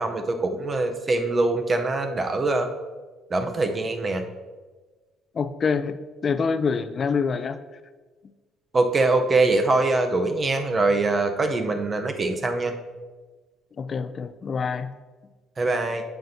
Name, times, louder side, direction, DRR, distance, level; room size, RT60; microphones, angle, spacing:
voice 1, 0.0-2.7 3.3-4.2 8.7-12.7 15.6-16.0, right 2 dB, 25° right, 6 dB, 0.7 m, -23 dB
voice 2, 5.3-6.0 6.2-7.6 13.8-14.9, left 5 dB, 35° left, 11 dB, 0.4 m, -26 dB
9.1 x 7.8 x 2.8 m, 1.3 s
cardioid pair, 140°, 0 cm